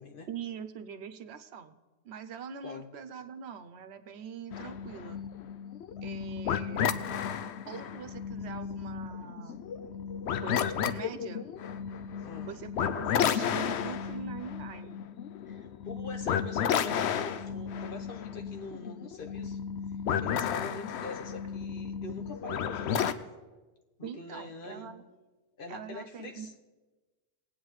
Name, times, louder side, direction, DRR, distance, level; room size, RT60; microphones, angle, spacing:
voice 1, 0.3-1.8 2.0-5.2 6.0-7.0 7.7-9.6 10.4-11.5 12.4-15.0 24.0-25.0 25.7-26.5, right 7 dB, 75° right, 9 dB, 0.9 m, -43 dB
sound 1, 4.5-23.1, left 8 dB, 80° left, 0.9 m, -33 dB
voice 2, 15.4-19.6 20.2-23.1 24.0-25.0 25.6-26.5, left 3 dB, 55° left, 4 dB, 1.2 m, -44 dB
19.5 x 8.8 x 3.2 m, 1.2 s
omnidirectional pair, 1.1 m